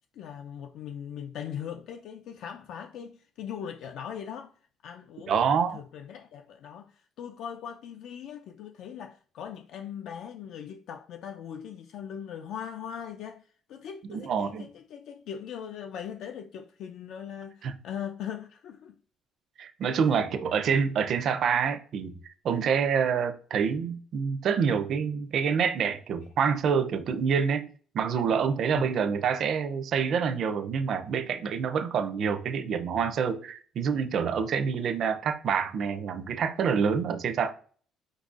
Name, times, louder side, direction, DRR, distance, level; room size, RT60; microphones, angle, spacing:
voice 1, 0.1-5.3 5.7-18.9 20.1-20.2 28.7-28.9, left 8 dB, 70° left, 0.4 m, -40 dB
voice 2, 5.3-5.8 14.1-14.7 17.6-17.8 19.6-22.1 22.4-37.5, right 6 dB, 55° right, 0.4 m, -27 dB
5.0 x 3.9 x 2.4 m
cardioid pair, 135°, 0 cm